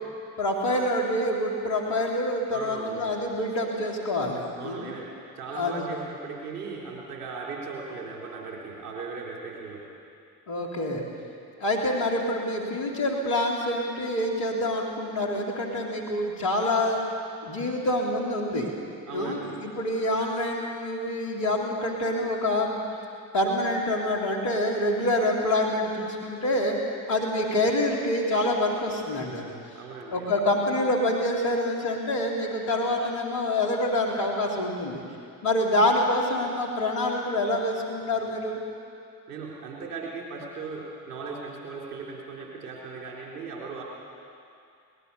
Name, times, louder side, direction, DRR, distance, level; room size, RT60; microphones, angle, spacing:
voice 1, 0.4-4.9 5.6-5.9 10.5-11.0 11.6-17.0 17.4-18.7 19.1-22.8 23.3-26.8 27.1-29.5 30.1-35.0 35.4-38.6, left 1 dB, 75° left, -1 dB, 3.7 m, -26 dB
voice 2, 2.5-3.1 4.6-5.1 5.4-9.8 19.1-19.6 29.7-30.3 39.3-43.8, right 4 dB, 80° right, -3 dB, 4.2 m, -38 dB
22.5 x 19.5 x 7.1 m, 2.4 s
hypercardioid pair, 45°, 45 cm